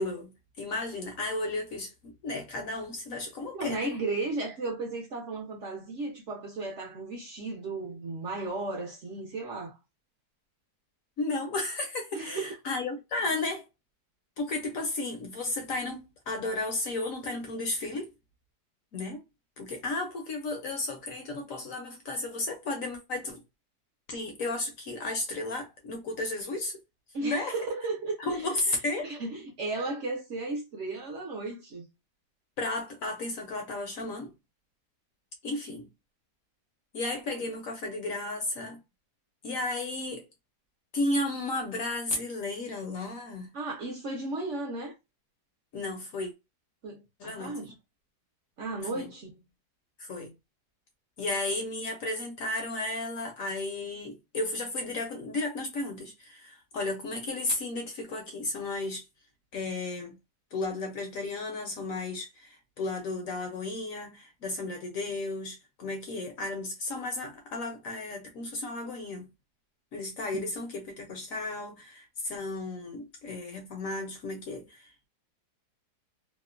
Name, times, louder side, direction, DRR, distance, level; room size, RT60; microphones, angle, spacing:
voice 1, 0.0-3.9 11.2-13.7 14.4-18.1 18.9-19.2 19.6-23.4 24.1-26.8 27.2-27.5 28.2-29.1 32.6-34.3 35.4-35.9 36.9-38.8 39.4-40.3 40.9-43.5 45.7-46.3 47.2-47.7 48.9-49.1 50.0-50.3 51.2-59.0 59.5-60.1 60.5-69.3 69.9-75.1, left 2 dB, 65° left, 0.9 m, -34 dB
voice 2, 3.5-9.8 12.1-12.5 27.1-28.5 29.0-31.9 43.5-44.9 46.8-47.8 48.6-49.4, right 3 dB, 60° right, 0.8 m, -35 dB
2.8 x 2.1 x 2.3 m
omnidirectional pair, 1.8 m